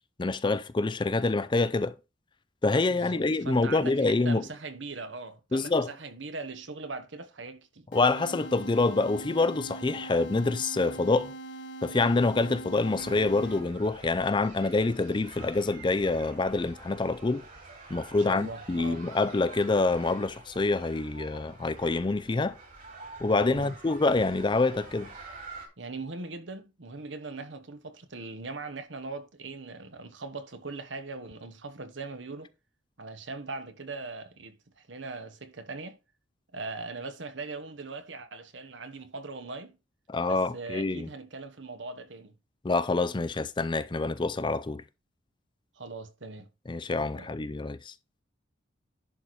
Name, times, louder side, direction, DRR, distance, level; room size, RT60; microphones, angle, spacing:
voice 1, 0.2-1.9 2.6-4.4 5.5-5.9 7.9-11.3 11.8-17.4 17.9-22.6 23.2-25.1 40.1-41.1 42.6-44.8 46.7-47.9, left 3 dB, 25° left, 0.4 m, -26 dB
voice 2, 2.9-7.9 18.1-19.1 23.5-23.8 25.8-32.5 33.0-36.0 36.5-39.8 40.3-42.3 45.7-46.5 47.2-47.3, right 3 dB, 70° right, 1.2 m, -40 dB
sound 1, 7.9-13.9, right 2 dB, 65° left, 1.6 m, -42 dB
School Playground, 12.9-25.7, right 3 dB, 45° right, 2.9 m, -47 dB
11.0 x 4.2 x 4.7 m
head